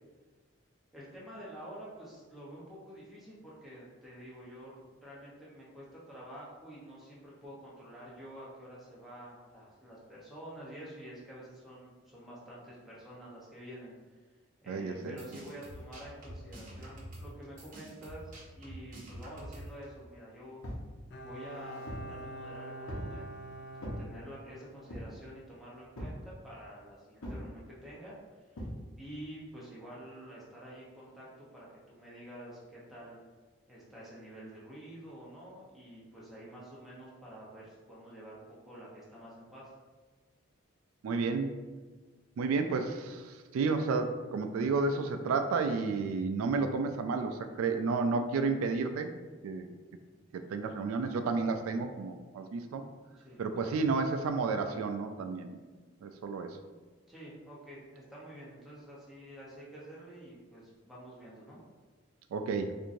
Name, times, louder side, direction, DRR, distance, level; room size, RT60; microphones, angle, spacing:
voice 1, 0.9-14.2 14.6-20.6 21.2-23.3 23.7-28.5 29.0-33.2 33.7-39.7 53.2-53.4 57.1-61.6, right 1 dB, ahead, -7 dB, 0.8 m, -48 dB
voice 2, 14.7-15.2 41.0-41.5 42.4-49.1 49.4-49.7 50.3-52.8 53.4-55.6 56.0-56.6 62.3-62.7, right 4 dB, 90° right, 8 dB, 0.3 m, -31 dB
sound 1, 15.0-19.8, equal, 40° right, 0.9 m, -47 dB
sound 2, 20.6-20.9 21.5-22.1 22.9-23.2 23.8-24.0 24.9-25.2 26.0-26.2 27.2-27.5 28.6-28.8, equal, 85° left, 0.9 m, -40 dB
Bowed string instrument, 21.1-24.8 25.1-25.2, right 1 dB, 50° left, 0.3 m, -46 dB
4.5 x 2.6 x 2.6 m, 1.3 s
head